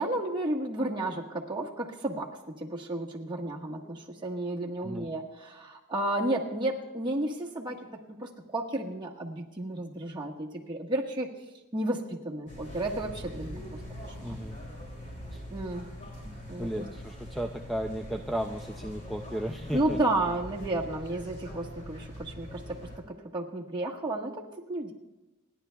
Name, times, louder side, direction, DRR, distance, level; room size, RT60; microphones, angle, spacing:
voice 1, 0.0-7.9 8.2-11.3 11.7-13.6 14.0-14.4 15.5-15.9 16.5-16.8 19.7-24.9, right 1 dB, 20° right, -2 dB, 1.4 m, -32 dB
voice 2, 4.8-5.1 14.2-14.6 15.3-15.4 16.2-20.0, equal, ahead, 4 dB, 0.4 m, -35 dB
sound 1, 12.5-23.0, equal, 35° left, 2.8 m, -43 dB
28.5 x 10.5 x 2.3 m, 1.1 s
head